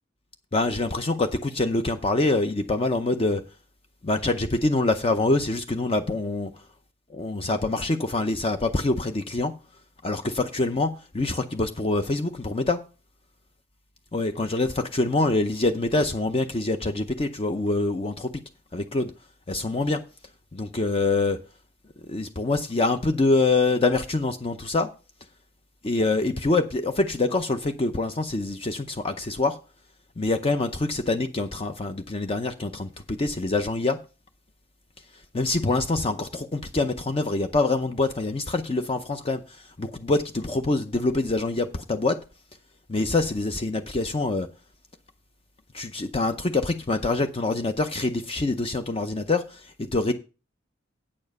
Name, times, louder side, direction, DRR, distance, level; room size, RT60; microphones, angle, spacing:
voice 1, 0.5-3.4 4.0-6.5 7.1-9.5 10.0-12.8 14.1-18.3 18.7-19.1 19.5-20.0 20.5-21.4 22.1-24.9 25.8-29.6 30.2-34.0 35.3-42.2 42.9-44.5 45.7-50.1, left 2 dB, 30° left, 0.6 m, -25 dB
8.7 x 7.1 x 5.3 m
head